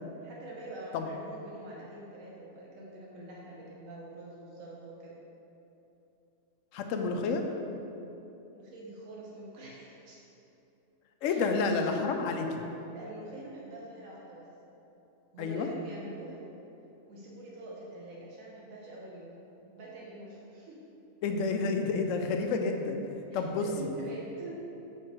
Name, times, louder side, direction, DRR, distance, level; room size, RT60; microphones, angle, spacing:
voice 1, 0.2-5.2 8.5-10.3 11.2-11.5 11.9-12.0 12.9-14.5 15.3-16.4 17.1-19.4 19.7-20.8 23.3-24.5, right 2 dB, 85° right, -4 dB, 1.2 m, -45 dB
voice 2, 6.7-7.5 11.2-12.5 15.4-15.7 21.2-23.0 23.3-23.9, left 4 dB, 75° left, 4 dB, 0.9 m, -30 dB
5.1 x 4.4 x 4.8 m, 2.9 s
omnidirectional pair, 1.4 m